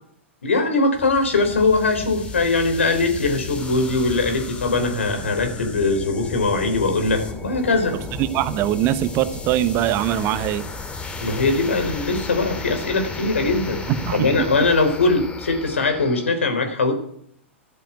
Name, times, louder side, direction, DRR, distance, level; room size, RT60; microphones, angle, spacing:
voice 1, 0.4-8.0 11.2-13.8 14.1-16.9, left 3 dB, 75° left, 6 dB, 4.0 m, -21 dB
sound 1, 0.9-16.3, left 3 dB, 15° left, 2.6 m, -34 dB
voice 2, 8.2-10.6 13.9-14.3, right 12 dB, 40° right, 13 dB, 1.1 m, -22 dB
13.5 x 8.9 x 9.2 m, 0.67 s
figure-of-eight pair, 100°, 7 cm